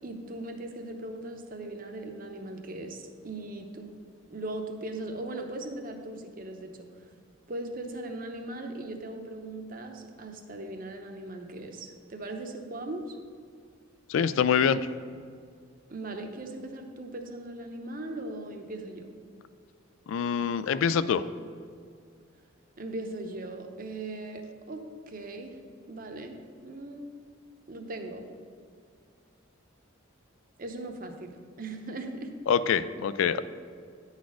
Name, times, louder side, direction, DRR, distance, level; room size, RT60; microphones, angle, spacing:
voice 1, 0.0-3.9 4.3-6.9 7.5-13.2 15.9-19.1 22.8-25.5 25.9-26.4 26.6-27.0 27.7-28.2 30.6-32.3, right 2 dB, 40° right, 5 dB, 0.7 m, -39 dB
voice 2, 14.1-14.9 20.1-21.2 32.5-33.4, left 7 dB, 70° left, 15 dB, 0.3 m, -25 dB
9.6 x 4.1 x 6.2 m, 2.1 s
head